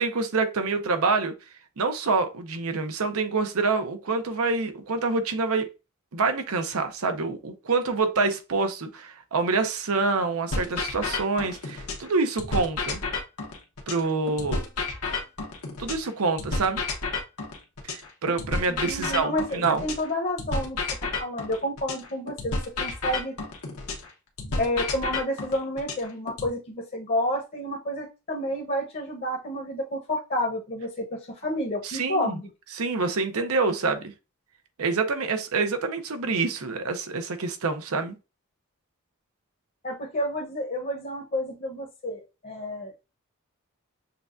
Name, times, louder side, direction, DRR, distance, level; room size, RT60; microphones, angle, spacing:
voice 1, 0.0-1.3 1.8-5.7 6.1-13.0 13.9-14.6 15.8-16.8 17.9-19.8 31.8-32.4 32.7-34.0 34.8-38.1, right 4 dB, 80° right, 0.7 m, -26 dB
sound 1, 10.5-12.1 12.4-16.1 16.4-20.1 20.4-24.1 24.4-26.5, left 3 dB, 85° left, 1.1 m, -31 dB
voice 2, 18.7-20.8 21.2-23.3 24.6-32.5 39.8-42.9, left 1 dB, 40° left, 0.9 m, -30 dB
6.7 x 2.3 x 2.5 m
head